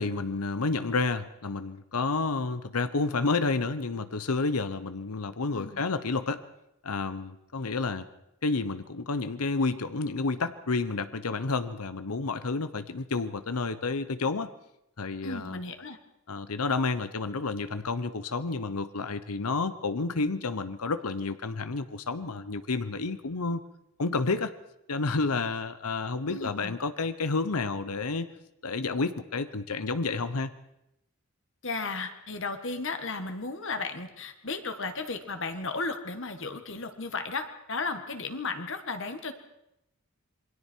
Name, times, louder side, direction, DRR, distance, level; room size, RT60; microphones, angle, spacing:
voice 1, 0.0-6.4 6.8-8.1 8.4-14.5 15.0-15.6 16.3-23.6 24.0-24.5 24.9-28.3 28.6-30.5, left 3 dB, 85° left, 12 dB, 0.9 m, -30 dB
voice 2, 15.2-16.0 26.3-26.8 31.6-39.3, left 3 dB, 60° left, 7 dB, 1.7 m, -34 dB
27.5 x 22.0 x 4.6 m, 0.85 s
head